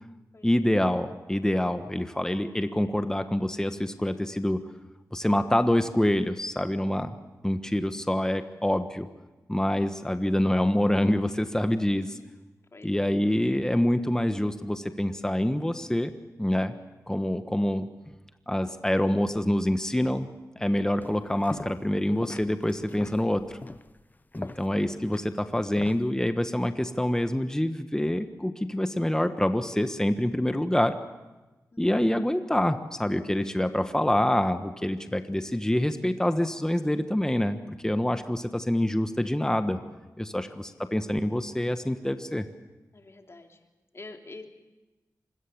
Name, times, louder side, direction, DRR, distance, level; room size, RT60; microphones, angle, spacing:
voice 1, 0.4-4.6 5.1-7.2 7.4-9.1 9.5-12.1 12.8-16.1 16.4-16.8 17.1-17.9 18.5-20.3 20.6-23.6 24.3-30.9 31.8-39.8 40.2-42.5, left 1 dB, 10° left, 8 dB, 1.3 m, -26 dB
voice 2, 11.8-12.3 12.7-13.2 24.4-24.7 31.7-31.8 40.3-40.5 42.9-43.7 43.9-44.5, left 2 dB, 45° left, 3 dB, 3.1 m, -48 dB
sound 1, 21.0-21.9 22.2-26.1, left 2 dB, 25° left, 0.8 m, -42 dB
25.5 x 21.5 x 7.1 m, 1.1 s
cardioid pair, 60°, 7 cm